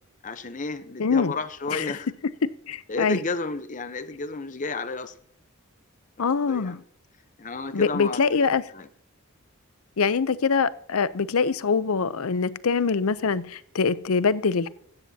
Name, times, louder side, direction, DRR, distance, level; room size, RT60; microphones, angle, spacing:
voice 1, 0.2-2.1 2.9-5.2 6.2-6.8 7.4-8.2 8.7-8.9, left 3 dB, 35° left, 0.7 m, -32 dB
voice 2, 1.0-1.3 1.7-1.9 2.7-3.2 6.2-6.8 7.7-8.6 10.0-14.7, left 5 dB, 75° left, 0.6 m, -24 dB
16.5 x 13.5 x 2.8 m
head